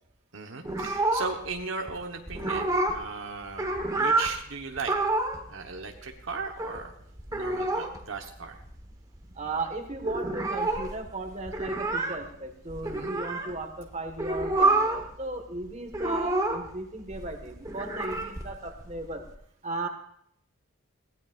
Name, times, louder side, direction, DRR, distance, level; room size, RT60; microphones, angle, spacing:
voice 1, 0.3-5.0 5.5-6.9 7.3-8.6 12.8-13.1, right 4 dB, 60° right, 3 dB, 1.2 m, -37 dB
sound 1, 0.6-1.6 1.9-2.0 2.3-3.1 3.4-4.3 4.8-5.4 5.7-5.8 6.0-6.8 7.2-8.0 8.3-8.4 8.6-9.2 9.5-9.6 9.8-13.5 14.1-15.1 15.3-16.7 17.1-19.3, right 2 dB, 15° right, 1.3 m, -28 dB
voice 2, 9.3-19.2 19.6-19.9, right 2 dB, 30° right, 4 dB, 1.6 m, -36 dB
22.0 x 17.0 x 2.5 m, 0.68 s
head